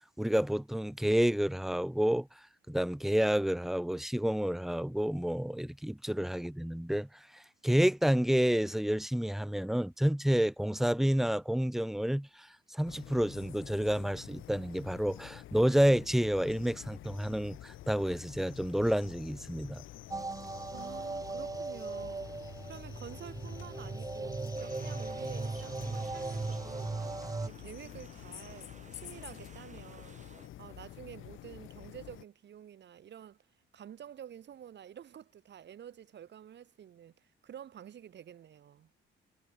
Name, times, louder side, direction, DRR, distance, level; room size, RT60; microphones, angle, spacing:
voice 1, 0.2-2.3 2.7-7.1 7.3-12.5 12.7-19.8, equal, ahead, 0.5 m, -29 dB
sound 1, 12.8-32.2, left 14 dB, 80° left, 2.8 m, -49 dB
sound 2, 20.1-27.5, right 3 dB, 15° right, 1.1 m, -38 dB
voice 2, 20.7-22.3 22.6-27.0 27.4-30.2 30.6-33.4 33.7-38.9, right 9 dB, 60° right, 3.1 m, -49 dB
sound 3, 24.6-30.5, right 5 dB, 35° right, 5.5 m, -55 dB
cardioid pair, 90°, 20 cm